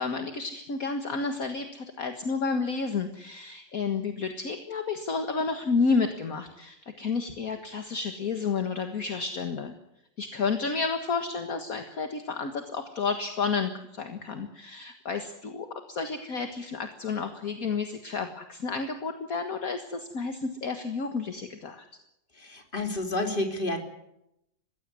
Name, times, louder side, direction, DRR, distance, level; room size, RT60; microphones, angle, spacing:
voice 1, 0.0-9.7 10.2-21.9, left 4 dB, 50° left, 6 dB, 2.0 m, -31 dB
voice 2, 22.4-23.8, left 2 dB, 30° left, 4 dB, 3.4 m, -30 dB
21.5 x 16.5 x 9.7 m, 0.82 s
omnidirectional pair, 1.9 m